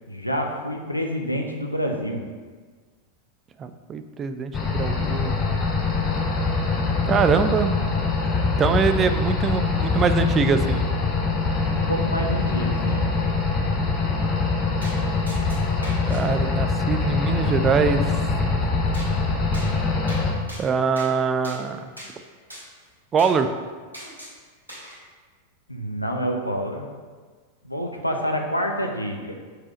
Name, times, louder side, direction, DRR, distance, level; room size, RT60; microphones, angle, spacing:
voice 1, 0.1-2.3 11.7-13.1 25.7-26.9 27.6-29.3, equal, 85° left, 2 dB, 0.8 m, -27 dB
voice 2, 3.6-5.4 7.0-7.8 8.6-10.8 16.1-18.1 20.6-21.9 23.1-23.5, right 5 dB, 25° right, 9 dB, 0.4 m, -23 dB
sound 1, 4.5-20.3, left 3 dB, 25° left, 1.0 m, -23 dB
sound 2, 14.8-15.0 15.3-16.2 18.9-19.1 19.5-19.7 20.1-20.2 20.5-21.1 21.4-21.6 22.0-22.1 22.5-22.6 23.2-23.4 23.9-24.3 24.7-25.0, equal, 80° right, 2.0 m, -40 dB
4.8 x 4.8 x 5.2 m, 1.5 s
figure-of-eight pair, 90°, 0 cm